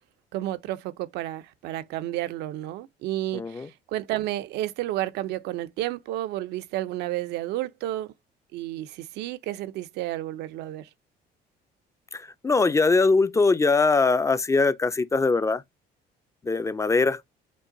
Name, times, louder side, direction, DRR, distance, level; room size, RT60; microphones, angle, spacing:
voice 1, 0.3-8.1 8.5-10.9, right 14 dB, 85° right, 0.6 m, -31 dB
voice 2, 3.3-3.7 12.1-15.6 16.4-17.2, left 3 dB, 20° left, 0.4 m, -22 dB
5.3 x 2.2 x 3.9 m
cardioid pair, 110°, 17 cm